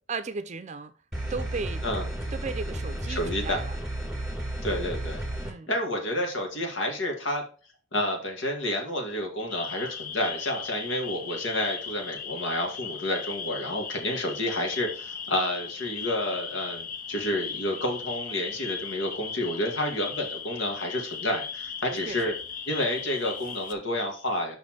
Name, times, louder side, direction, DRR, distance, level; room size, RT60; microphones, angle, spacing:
voice 1, 0.1-0.9 1.3-1.8 2.3-3.8 5.4-5.7 21.9-22.3, right 4 dB, 35° right, 0.5 m, -35 dB
sound 1, 1.1-5.5, right 1 dB, ahead, 2.3 m, -33 dB
voice 2, 3.1-3.6 4.6-5.2 5.7-7.4 7.9-22.3 22.7-24.6, left 1 dB, 75° left, 2.1 m, -30 dB
sound 2, 9.5-23.7, left 6 dB, 45° left, 0.6 m, -37 dB
5.6 x 4.3 x 6.1 m
head